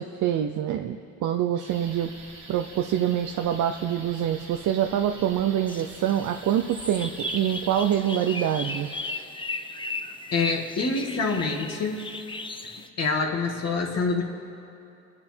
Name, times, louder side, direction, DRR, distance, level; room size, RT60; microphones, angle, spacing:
voice 1, 0.0-2.1 2.5-8.9, right 10 dB, 70° right, 5 dB, 0.7 m, -25 dB
sound 1, 1.5-9.2, right 3 dB, 85° right, 2.8 m, -46 dB
Bird vocalization bird call bird song, 1.7-7.9, right 2 dB, 5° right, 1.6 m, -43 dB
sound 2, 5.7-12.9, left 3 dB, 15° left, 0.8 m, -36 dB
voice 2, 10.3-12.1 13.0-14.2, left 4 dB, 55° left, 1 dB, 2.3 m, -26 dB
28.0 x 9.9 x 4.6 m, 2.8 s
cardioid pair, 90°, 30 cm